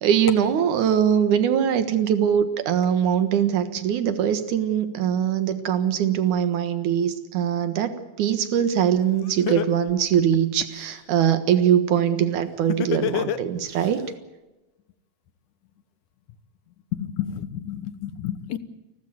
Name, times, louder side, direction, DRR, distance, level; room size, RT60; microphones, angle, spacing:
voice 1, 0.0-14.0, right 9 dB, 85° right, 10 dB, 3.0 m, -22 dB
Laughter, 8.9-9.0 9.5-10.9 12.7-13.9, left 9 dB, 70° left, 1.1 m, -26 dB
voice 2, 16.9-18.6, left 11 dB, 90° left, 13 dB, 2.6 m, -31 dB
29.5 x 12.5 x 9.4 m, 1.1 s
omnidirectional pair, 3.4 m